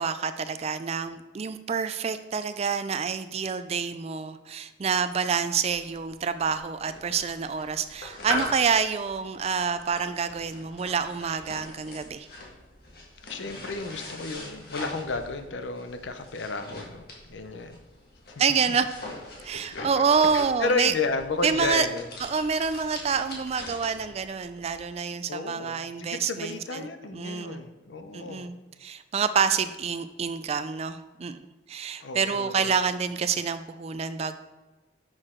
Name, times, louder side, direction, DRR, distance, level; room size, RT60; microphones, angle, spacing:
voice 1, 0.0-12.3 18.4-18.9 19.4-20.9 21.4-21.9 22.2-26.8 27.1-27.7 28.1-34.4, right 6 dB, 35° right, 12 dB, 0.3 m, -27 dB
sound 1, 5.7-24.8, left 1 dB, 55° left, 1.6 m, -41 dB
voice 2, 13.3-17.8 18.3-18.8 19.7-20.0 20.3-22.1 25.3-28.5 32.0-32.8, left 3 dB, 75° left, 9 dB, 0.6 m, -32 dB
6.5 x 6.3 x 3.7 m, 1.2 s
head